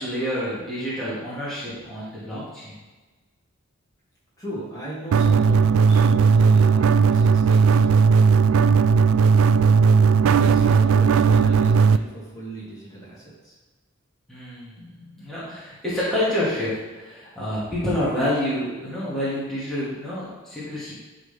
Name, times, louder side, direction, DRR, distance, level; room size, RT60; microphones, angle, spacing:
voice 1, 0.0-2.7 14.3-20.9, left 1 dB, ahead, -12 dB, 2.1 m, -28 dB
voice 2, 4.4-7.9 10.3-13.5, right 1 dB, 20° left, -7 dB, 2.4 m, -37 dB
sound 1, 5.1-12.0, right 5 dB, 90° right, 0.3 m, -16 dB
11.0 x 3.9 x 3.5 m, 1.3 s
head